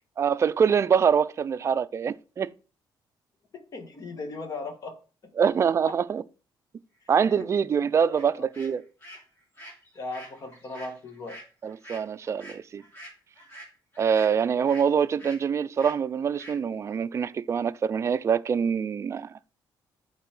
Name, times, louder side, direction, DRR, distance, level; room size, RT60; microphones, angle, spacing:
voice 1, 0.2-2.5 5.4-6.2 7.1-8.9 11.6-12.8 14.0-19.3, right 7 dB, 35° right, 0.4 m, -24 dB
voice 2, 3.5-5.0 5.4-5.5 7.3-7.5 8.1-8.4 10.0-11.4, left 3 dB, 45° left, 1.6 m, -37 dB
sound 1, 8.1-8.2 8.5-14.9 15.2-15.4 15.8-16.0 16.4-16.6, right 1 dB, 25° left, 3.1 m, -46 dB
8.3 x 4.1 x 6.0 m
cardioid pair, 130°, 8 cm